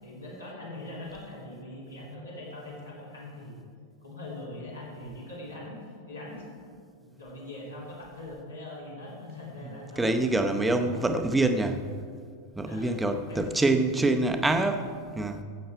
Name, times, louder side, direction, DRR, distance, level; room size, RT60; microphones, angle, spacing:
voice 1, 0.0-3.6 4.0-5.8 6.0-6.5 7.0-10.1 10.6-11.2 12.6-13.5, left 1 dB, 80° left, -6 dB, 3.1 m, -42 dB
voice 2, 10.0-11.8 12.6-15.4, right 2 dB, 10° right, 7 dB, 0.8 m, -25 dB
14.5 x 7.7 x 4.5 m, 2.1 s
figure-of-eight pair, 90°, 0 cm